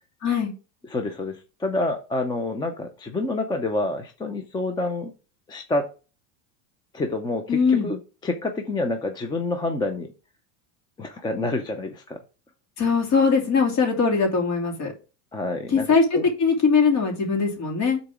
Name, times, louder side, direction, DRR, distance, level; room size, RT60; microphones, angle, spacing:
voice 1, 0.2-0.5 7.5-7.9 12.8-14.9 15.7-18.0, left 5 dB, 45° left, 0 dB, 2.8 m, -21 dB
voice 2, 0.9-5.1 5.5-5.9 6.9-10.1 11.0-12.2 15.3-15.9 16.1-16.2, left 2 dB, 10° left, 6 dB, 0.5 m, -28 dB
6.6 x 4.0 x 6.1 m, 0.33 s
supercardioid pair, 150°, 38 cm